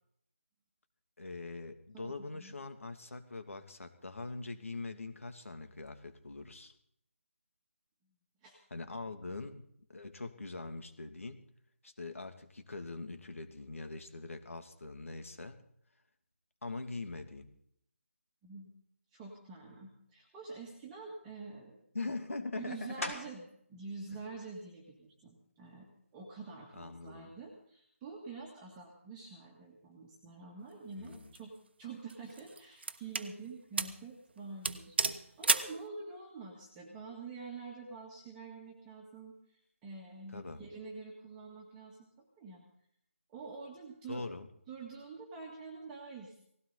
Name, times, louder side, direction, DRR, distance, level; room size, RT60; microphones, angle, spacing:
voice 1, 1.2-6.7 8.7-11.4 11.8-15.6 16.6-17.5 21.9-23.1 26.8-27.3 31.0-31.3 40.3-40.6 44.1-44.5, left 3 dB, 70° left, 7 dB, 2.6 m, -42 dB
voice 2, 1.9-2.6 8.4-8.6 18.4-18.8 19.1-21.8 22.6-31.5 31.8-42.7 43.3-44.2 44.7-46.4, right 4 dB, 10° right, -2 dB, 1.8 m, -47 dB
sound 1, 23.0-23.6 24.2-28.6 29.1-34.3 34.6-40.2, left 2 dB, 90° left, 5.0 m, -51 dB
sound 2, 31.1-31.4 32.1-33.3 33.8-34.0 34.3-34.4 34.6-35.8, right 4 dB, 50° right, 1.2 m, -32 dB
19.0 x 16.5 x 4.1 m, 0.69 s
figure-of-eight pair, 170°, 8 cm